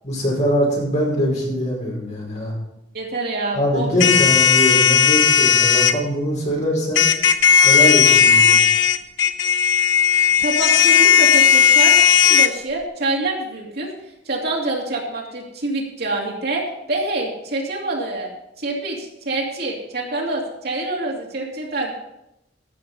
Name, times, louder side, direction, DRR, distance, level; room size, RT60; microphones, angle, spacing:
voice 1, 0.0-2.5 3.5-7.1 7.6-8.6, equal, 40° left, -3 dB, 5.0 m, -22 dB
voice 2, 2.9-4.1 10.4-11.9 12.2-13.9 14.2-18.3 18.6-22.0, right 2 dB, 60° right, -1 dB, 2.6 m, -26 dB
sound 1, 4.0-5.9 7.0-12.5, left 7 dB, 90° left, 0.8 m, -15 dB
14.0 x 6.9 x 5.4 m, 0.86 s
head